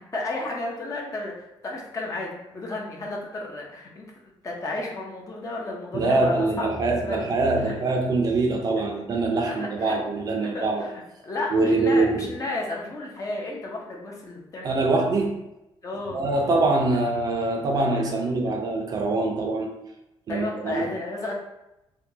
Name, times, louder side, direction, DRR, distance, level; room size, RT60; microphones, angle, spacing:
voice 1, 0.1-7.3 9.5-10.0 10.5-14.7 15.8-16.2 20.3-21.4, left 2 dB, 35° left, -1 dB, 0.7 m, -33 dB
voice 2, 5.9-10.9 11.5-12.3 14.6-15.4 16.1-19.7 20.3-20.9, right 2 dB, 40° right, 2 dB, 0.5 m, -24 dB
4.4 x 2.3 x 2.7 m, 0.91 s
cardioid pair, 150°, 10 cm